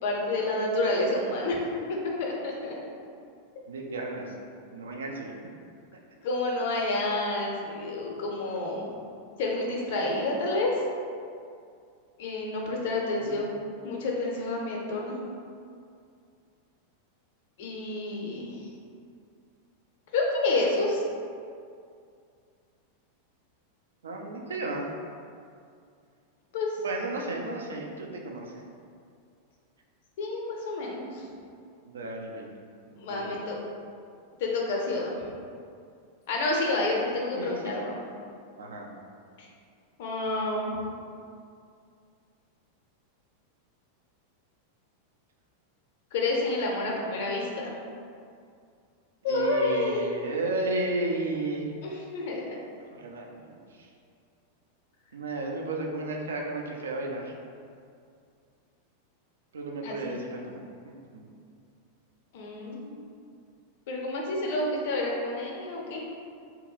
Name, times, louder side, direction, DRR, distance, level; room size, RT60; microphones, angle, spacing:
voice 1, 0.0-1.6 1.9-2.7 3.8-3.9 6.2-8.9 9.4-10.7 12.2-13.5 13.8-15.2 17.6-18.7 20.1-21.0 26.5-26.8 30.2-31.2 33.0-33.6 34.4-35.2 36.3-38.0 39.4-39.5 40.0-40.7 46.1-47.8 49.2-50.1 51.8-52.6 59.8-60.2 62.3-63.0 63.9-66.0, left 2 dB, 50° left, -1 dB, 0.6 m, -29 dB
voice 2, 3.7-4.3 4.7-5.3 13.2-13.5 24.0-24.9 26.8-28.5 31.8-32.5 32.8-33.3 37.4-37.7 38.6-38.9 49.3-51.7 52.9-53.9 55.1-57.3 59.5-61.3, right 2 dB, 65° right, 0 dB, 0.4 m, -34 dB
2.8 x 2.2 x 3.8 m, 2.3 s
figure-of-eight pair, 90°, 0 cm